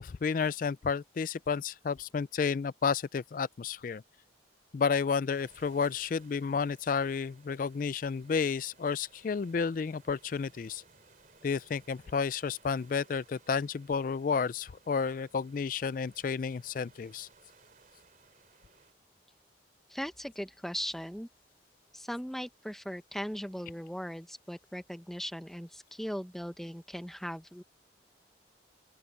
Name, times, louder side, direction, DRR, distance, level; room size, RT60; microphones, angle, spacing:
voice 1, 0.0-4.0 4.7-10.8 11.4-17.3, left 5 dB, 45° left, 0.3 m, -31 dB
sound 1, 5.3-18.9, right 4 dB, 45° right, 2.7 m, -62 dB
voice 2, 19.9-21.3 21.9-27.6, equal, ahead, 0.9 m, -39 dB
open air
head